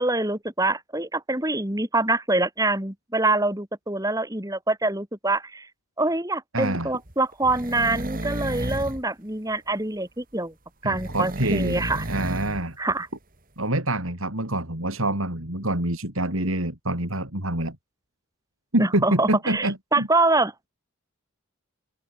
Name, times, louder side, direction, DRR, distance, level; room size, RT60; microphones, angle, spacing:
voice 1, 0.0-5.7 6.0-10.5 10.8-12.0 12.8-13.1 18.8-20.5, right 2 dB, 15° right, 2.5 m, -25 dB
voice 2, 6.5-6.9 10.8-12.8 13.6-17.8 18.7-20.1, right 1 dB, 75° right, 5.6 m, -26 dB
sound 1, 7.1-9.0 10.9-12.6 12.9-13.0, right 1 dB, 40° right, 3.1 m, -32 dB
open air
head